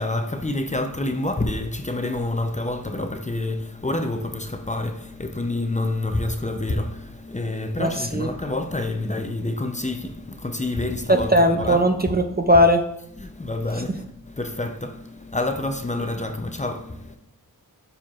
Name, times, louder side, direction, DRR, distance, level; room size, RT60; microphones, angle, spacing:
voice 1, 0.0-11.9 12.3-12.5 13.1-17.2, left 2 dB, 20° left, 0.6 m, -28 dB
voice 2, 11.1-12.8, equal, 25° right, 0.5 m, -18 dB
12.0 x 4.4 x 2.4 m
wide cardioid pair, 75°, 37 cm